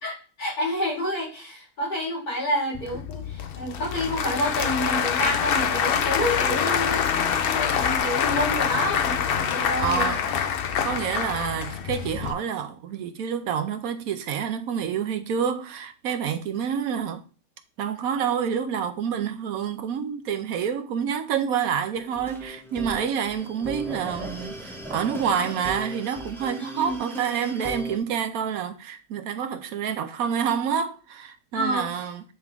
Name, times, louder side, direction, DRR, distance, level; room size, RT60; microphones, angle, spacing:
voice 1, 0.0-10.1 26.6-26.9 31.5-32.0, equal, 85° left, 4.2 m, -29 dB
Applause / Crowd, 2.7-12.3, left 7 dB, 65° left, 0.6 m, -25 dB
voice 2, 9.8-10.4 10.8-17.2 17.8-32.2, right 7 dB, 75° right, 1.2 m, -28 dB
sound 1, 22.0-28.0, equal, ahead, 0.9 m, -38 dB
9.1 x 3.6 x 3.5 m
omnidirectional pair, 1.6 m